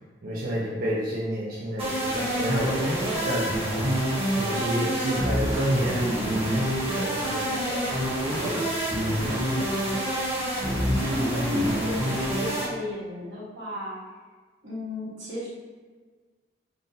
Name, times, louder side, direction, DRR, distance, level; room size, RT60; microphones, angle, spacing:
voice 1, 0.2-3.9 4.4-7.9 8.3-9.4, equal, 55° right, -7 dB, 0.6 m, -31 dB
sound 1, 1.8-12.7, equal, 35° right, 1.1 m, -27 dB
voice 2, 10.9-14.0 14.6-15.5, left 1 dB, 90° right, -7 dB, 1.4 m, -33 dB
3.8 x 2.6 x 2.7 m, 1.4 s
head